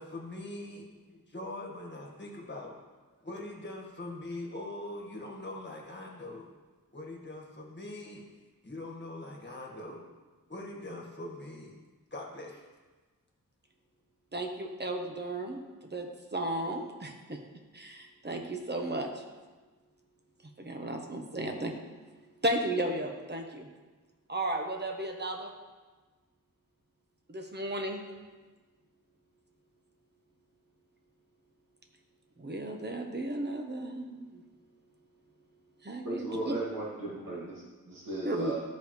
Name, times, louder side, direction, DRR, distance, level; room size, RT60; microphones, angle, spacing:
voice 1, 0.0-2.8 3.2-6.5 6.9-8.2 8.6-10.0 10.5-11.7 12.1-12.6, left 1 dB, 30° left, -1 dB, 1.7 m, -42 dB
voice 2, 14.3-17.4 17.7-19.2 20.6-21.7 22.4-23.7 24.3-25.5 27.3-28.0 32.4-34.4 35.8-36.5 38.2-38.5, right 1 dB, 30° right, 3 dB, 1.0 m, -34 dB
voice 3, 36.0-38.6, right 2 dB, 75° right, -6 dB, 2.2 m, -36 dB
13.0 x 5.3 x 3.2 m, 1.3 s
wide cardioid pair, 80°, 34 cm